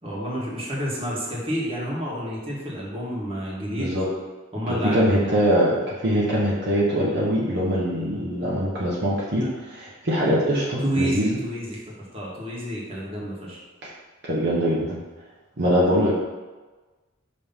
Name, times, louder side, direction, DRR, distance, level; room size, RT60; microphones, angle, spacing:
voice 1, 0.0-4.0 4.5-5.3 10.8-11.8 12.1-13.6, equal, 30° right, -5 dB, 1.6 m, -29 dB
voice 2, 3.8-4.1 4.7-11.4 13.8-13.9 14.3-15.0 15.6-16.1, equal, 60° right, -6 dB, 1.1 m, -23 dB
5.3 x 3.3 x 5.6 m, 1.3 s
head